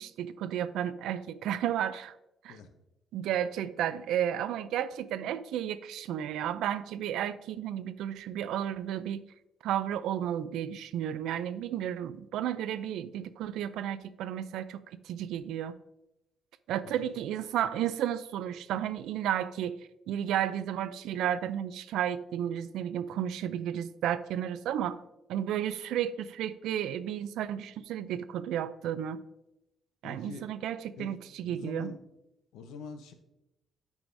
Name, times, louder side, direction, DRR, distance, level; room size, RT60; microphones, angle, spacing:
voice 1, 0.0-2.1 2.4-2.6 3.1-9.2 9.6-14.8 15.0-15.8 16.7-19.8 20.1-25.0 25.3-29.2 30.0-31.9, right 10 dB, 85° right, 14 dB, 0.4 m, -32 dB
voice 2, 16.8-17.2 30.0-30.4 31.0-31.2 31.4-32.0 32.5-33.1, left 4 dB, 85° left, 7 dB, 0.8 m, -44 dB
9.6 x 4.8 x 2.6 m, 0.91 s
cardioid pair, 90°, 0 cm